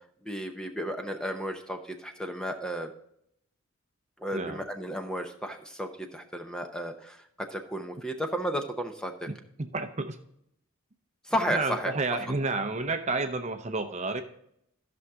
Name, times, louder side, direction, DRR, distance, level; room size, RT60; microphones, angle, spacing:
voice 1, 0.3-2.9 4.2-9.1 11.3-11.9, equal, 5° left, 5 dB, 0.7 m, -33 dB
voice 2, 4.3-4.7 9.3-10.2 11.5-14.2, right 3 dB, 30° right, 7 dB, 0.7 m, -31 dB
14.0 x 6.2 x 3.6 m, 0.73 s
head